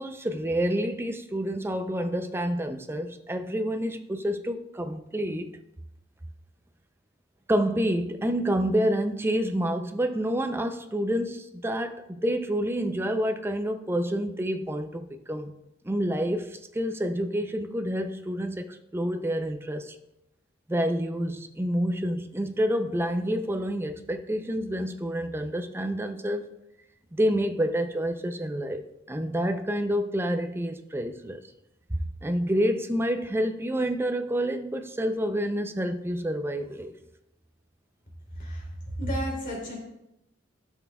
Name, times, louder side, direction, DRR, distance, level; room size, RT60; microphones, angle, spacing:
voice 1, 0.0-5.6 7.5-15.5 15.8-20.0 20.7-26.5 27.1-31.4 32.2-36.9, equal, 10° right, 0.5 m, -28 dB
voice 2, 38.3-38.7 39.0-39.8, equal, 45° left, 2.9 m, -31 dB
13.0 x 6.1 x 2.3 m
head